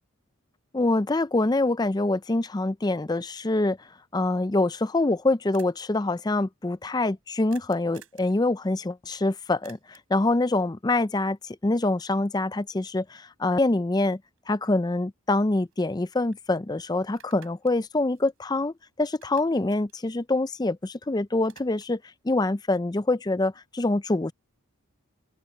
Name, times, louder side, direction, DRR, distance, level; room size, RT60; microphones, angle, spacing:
voice 1, 0.7-3.8 4.1-14.2 14.5-24.3, left 2 dB, 20° left, 0.4 m, -25 dB
sound 1, 5.5-5.8 7.5-8.3 9.6-10.2 14.4-14.5 14.9-16.0 16.3-16.4 17.0-18.8 19.1-20.9 21.2-22.1, right 9 dB, 70° right, 5.0 m, -55 dB
open air
head